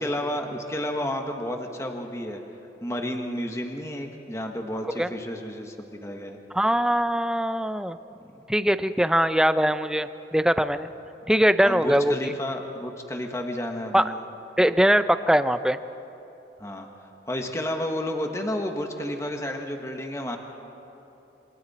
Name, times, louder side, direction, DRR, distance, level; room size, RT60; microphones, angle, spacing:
voice 1, 0.0-2.4 2.8-6.4 11.6-14.2 16.6-16.9 17.3-20.4, left 1 dB, 15° left, 3 dB, 1.4 m, -31 dB
voice 2, 6.5-8.0 8.5-10.9 11.3-12.1 13.9-14.1 14.6-15.8, equal, 5° right, 11 dB, 0.5 m, -21 dB
28.0 x 25.5 x 4.3 m, 3.0 s
head